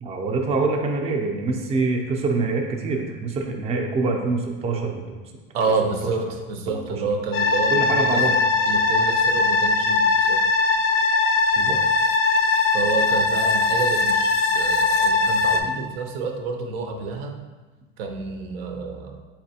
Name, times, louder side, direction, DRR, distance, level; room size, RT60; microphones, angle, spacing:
voice 1, 0.0-5.2 5.8-6.1 6.7-7.0 7.7-8.4 11.6-11.8, right 3 dB, 20° right, 2 dB, 0.4 m, -25 dB
voice 2, 5.5-8.2 8.7-10.4 12.7-17.4 18.0-19.2, right 4 dB, 80° right, 4 dB, 0.7 m, -29 dB
sound 1, 7.3-15.6, left 3 dB, 45° left, 0.4 m, -20 dB
4.1 x 3.3 x 2.7 m, 1.3 s
supercardioid pair, 120°, 30 cm